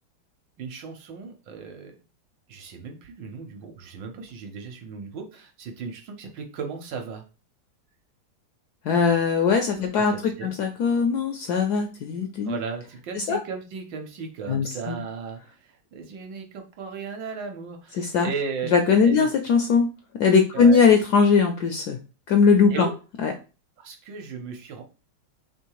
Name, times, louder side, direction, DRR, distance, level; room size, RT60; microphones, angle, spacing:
voice 1, 0.6-2.0 2.5-7.2 9.0-9.1 9.8-10.5 12.4-18.7 19.0-19.3 20.5-20.8 22.7-22.9 23.8-24.8, right 5 dB, 70° right, 4 dB, 1.4 m, -36 dB
voice 2, 8.8-10.1 10.4-12.6 13.2-13.4 14.5-15.0 18.0-18.3 18.7-19.9 20.2-22.0 22.3-22.9 23.2-23.3, left 5 dB, 75° left, 5 dB, 0.9 m, -20 dB
3.4 x 3.1 x 4.6 m, 0.33 s
omnidirectional pair, 2.2 m